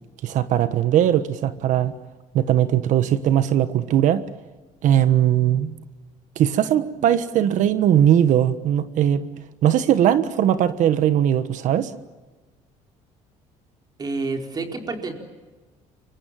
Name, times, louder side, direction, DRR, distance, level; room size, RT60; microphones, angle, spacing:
voice 1, 0.2-1.9 2.3-4.2 4.8-5.8 6.4-9.3 9.6-11.9, right 10 dB, 65° right, 12 dB, 1.3 m, -19 dB
voice 2, 14.0-15.1, right 3 dB, 30° right, 3 dB, 4.5 m, -28 dB
28.5 x 24.0 x 7.6 m, 1.2 s
cardioid pair, 125°, 14 cm